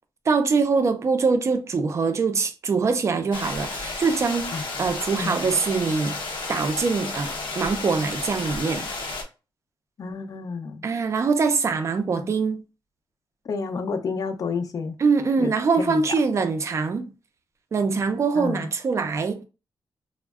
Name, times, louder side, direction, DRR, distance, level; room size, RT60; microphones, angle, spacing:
voice 1, 0.3-6.2 6.5-8.9 10.8-12.6 15.0-17.1 17.7-19.4, right 4 dB, 35° right, 0.4 m, -23 dB
sound 1, 3.3-9.2, left 3 dB, 85° left, 0.7 m, -32 dB
voice 2, 10.0-10.8 12.1-12.3 13.4-15.0 15.4-16.0 18.3-18.7, left 5 dB, 45° left, 0.4 m, -30 dB
3.3 x 2.0 x 2.3 m
wide cardioid pair, 155°, 9 cm